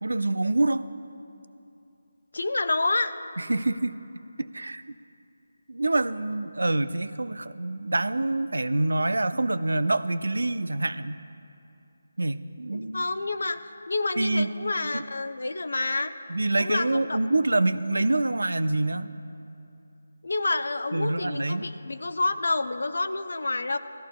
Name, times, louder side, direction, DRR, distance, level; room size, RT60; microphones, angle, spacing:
voice 1, 0.0-0.9 3.4-3.9 4.4-4.8 5.7-11.2 12.2-13.0 14.2-14.5 14.9-15.0 16.3-19.1 20.9-21.7, right 2 dB, 90° right, 14 dB, 0.4 m, -26 dB
voice 2, 2.3-3.1 12.7-16.1 16.6-17.2 20.2-23.8, left 2 dB, 75° left, 11 dB, 0.6 m, -28 dB
17.5 x 14.0 x 2.3 m, 2.7 s
figure-of-eight pair, 165°, 0 cm